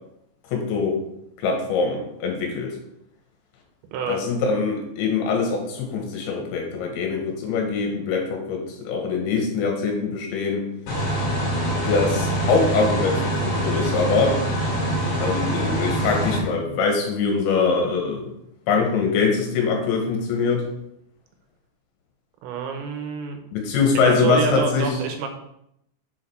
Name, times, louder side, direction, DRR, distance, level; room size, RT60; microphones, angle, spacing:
voice 1, 0.5-1.0 1.4-2.7 4.1-10.6 11.9-14.4 15.2-18.3 18.7-20.6 23.5-24.9, left 4 dB, 70° left, 2 dB, 3.3 m, -23 dB
sound 1, 10.9-16.4, right 1 dB, 45° left, 3.2 m, -24 dB
voice 2, 22.4-23.4 24.0-25.3, right 6 dB, 90° right, 5 dB, 3.7 m, -27 dB
7.6 x 5.0 x 5.8 m, 0.77 s
omnidirectional pair, 5.9 m